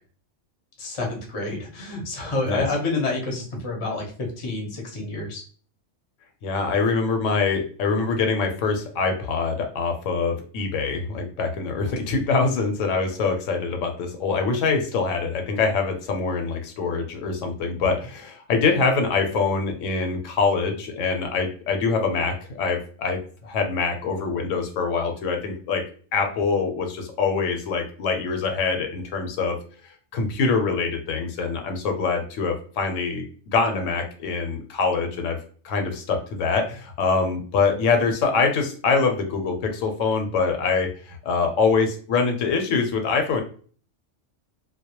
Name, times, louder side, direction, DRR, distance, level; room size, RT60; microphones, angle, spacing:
voice 1, 0.8-5.4, left 2 dB, 35° left, 0 dB, 0.5 m, -28 dB
voice 2, 6.4-23.2 23.4-25.8 26.1-29.6 30.1-33.2 33.5-35.4 35.6-43.4, left 4 dB, 80° left, 4 dB, 0.9 m, -24 dB
2.2 x 2.0 x 2.8 m, 0.43 s
omnidirectional pair, 1.3 m